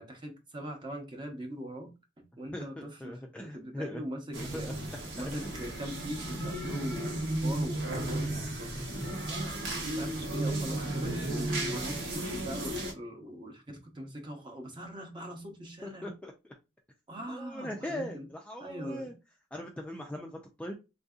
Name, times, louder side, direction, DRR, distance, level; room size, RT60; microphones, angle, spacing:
voice 1, 0.0-4.7 5.2-8.4 9.3-9.6 10.0-16.1 17.1-18.3 18.6-19.1, equal, 25° right, 0.7 m, -41 dB
voice 2, 2.5-4.0 4.4-4.7 5.3-5.5 15.8-16.5 17.3-19.2 19.5-20.7, left 1 dB, 5° left, 0.3 m, -40 dB
sound 1, 4.3-12.9, right 1 dB, 75° right, 1.0 m, -34 dB
3.5 x 2.6 x 2.3 m
head